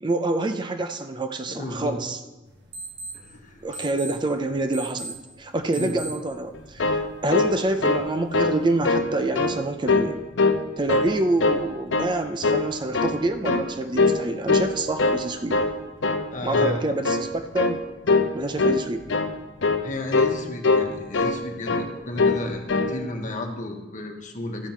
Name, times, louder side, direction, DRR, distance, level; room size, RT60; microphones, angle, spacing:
voice 1, 0.0-2.2 3.6-10.2 10.8-15.6 16.4-17.8 18.3-19.0, right 2 dB, 25° right, 8 dB, 0.5 m, -27 dB
voice 2, 1.5-2.0 3.1-3.9 5.7-6.0 16.3-16.8 19.8-24.7, left 1 dB, 45° left, 3 dB, 1.3 m, -33 dB
sound 1, 2.5-9.0, right 3 dB, 65° right, 1.7 m, -42 dB
sound 2, 6.5-8.1 8.3-8.6 8.8-9.5 9.9-10.6 10.9-11.6 11.9-12.1 12.4-13.2 13.4-13.7 14.0-14.2 14.5-15.2 15.5-15.7 16.0-16.3 16.5-16.8 17.0-17.3 17.6-17.8 18.1-18.3 18.6-18.8 19.1-19.3 19.6-19.8 20.1-20.4 20.6-21.4 21.7-21.9 22.2-22.4 22.7-22.9, left 3 dB, 80° left, 0.7 m, -22 dB
13.0 x 4.5 x 7.3 m, 1.1 s
head